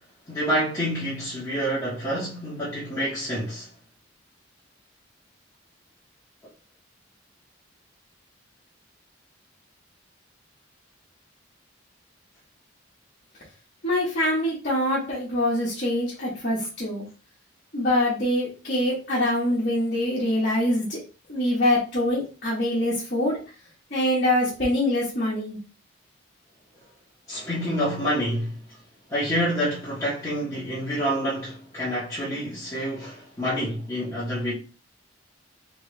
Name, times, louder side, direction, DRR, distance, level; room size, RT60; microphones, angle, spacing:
voice 1, 0.3-3.7 27.3-28.6 29.1-34.5, equal, 15° left, 1.1 m, -27 dB
voice 2, 13.8-17.0 17.7-21.0 21.3-23.4 23.9-25.6, left 1 dB, 45° left, 1.3 m, -24 dB
3.2 x 3.1 x 3.2 m
head